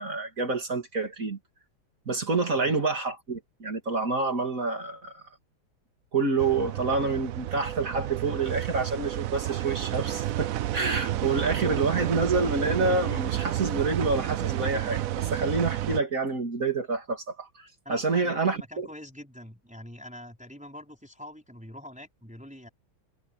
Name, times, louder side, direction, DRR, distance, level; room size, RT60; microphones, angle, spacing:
voice 1, 0.0-1.4 2.1-5.2 6.1-18.9, right 3 dB, 40° right, 3.2 m, -28 dB
voice 2, 2.4-2.7 17.8-22.7, left 1 dB, 5° right, 5.0 m, -44 dB
sound 1, 6.4-16.0, right 13 dB, 75° right, 0.7 m, -30 dB
omnidirectional pair, 2.2 m